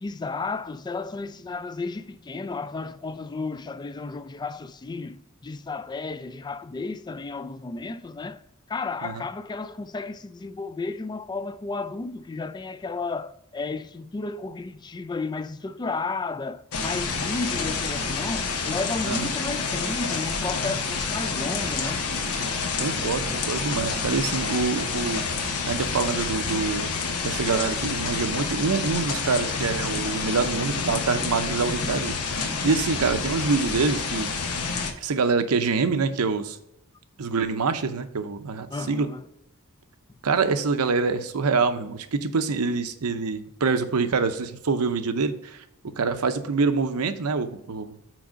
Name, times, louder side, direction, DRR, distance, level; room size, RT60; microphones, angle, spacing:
voice 1, 0.0-8.4 8.7-22.0 38.7-39.2, left 3 dB, 20° left, 0.3 m, -33 dB
sound 1, 16.7-34.9, left 4 dB, 80° left, 0.9 m, -28 dB
voice 2, 22.8-26.9 27.2-32.1 32.6-34.3 35.0-36.6 37.2-39.1 40.2-45.6 46.0-47.9, right 4 dB, 85° right, 0.7 m, -25 dB
6.2 x 4.6 x 5.1 m
head